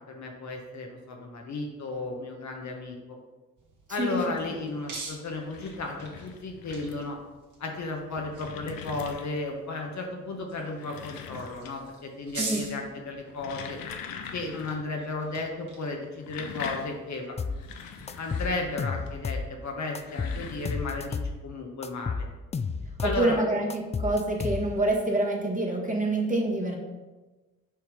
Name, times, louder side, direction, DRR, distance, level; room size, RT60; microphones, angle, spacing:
voice 1, 0.1-3.0 3.9-7.2 7.6-13.8 14.3-17.5 18.2-22.3 23.0-23.4, left 3 dB, 50° left, 2 dB, 1.2 m, -34 dB
sound 1, 3.6-18.0, right 3 dB, 55° right, 2.1 m, -45 dB
voice 2, 3.9-4.2 12.4-12.7 23.0-26.8, right 2 dB, 20° right, -1 dB, 1.6 m, -27 dB
sound 2, 5.2-7.2 7.9-9.6 10.5-12.0 12.3-12.7 13.2-14.9 15.1-15.2 16.0-19.1 19.8-20.8, left 6 dB, 70° left, 0.8 m, -42 dB
sound 3, 17.4-17.6 18.1-19.5 19.9-21.4 21.8-23.3 23.7-24.9, left 5 dB, 20° left, 0.3 m, -32 dB
6.8 x 3.1 x 5.1 m, 1.2 s
supercardioid pair, 60°, 36 cm